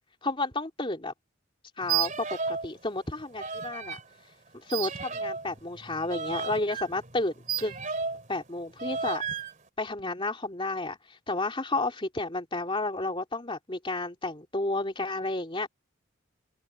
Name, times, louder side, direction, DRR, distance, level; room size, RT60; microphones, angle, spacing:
voice 1, 0.2-1.1 1.8-4.0 4.7-7.7 8.3-9.2 9.8-15.7, left 2 dB, 25° left, 3.0 m, -31 dB
sound 1, 1.8-2.7 3.0-4.0 4.7-8.3 8.8-9.5, right 6 dB, 40° right, 3.5 m, -33 dB
open air
head